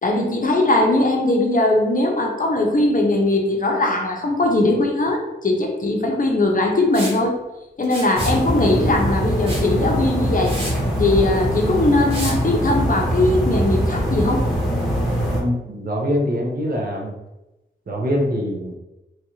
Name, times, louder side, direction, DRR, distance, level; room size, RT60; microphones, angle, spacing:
voice 1, 0.0-7.4 7.8-10.6 11.0-14.5, left 2 dB, 45° left, 1 dB, 0.6 m, -20 dB
Liquid, 6.9-7.2 7.8-8.4 9.5-9.7 10.1-10.2 10.4-10.7 12.1-12.4, equal, 25° right, 1.2 m, -31 dB
sound 1, 8.1-15.4, equal, ahead, 1.0 m, -22 dB
voice 2, 15.3-17.1 17.9-18.7, equal, 50° right, -1 dB, 0.8 m, -23 dB
3.1 x 2.5 x 2.9 m, 0.97 s
wide cardioid pair, 100°, 20 cm